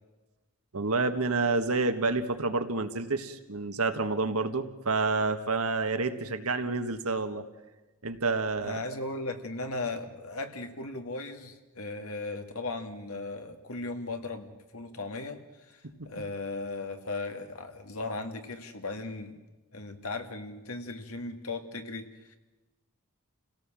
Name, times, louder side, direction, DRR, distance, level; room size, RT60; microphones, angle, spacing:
voice 1, 0.7-7.4 8.0-8.8 15.8-16.1, right 3 dB, 80° right, 8 dB, 1.6 m, -29 dB
voice 2, 8.6-19.4 19.7-22.4, left 3 dB, 75° left, 6 dB, 2.1 m, -37 dB
28.5 x 17.0 x 7.6 m, 1.1 s
head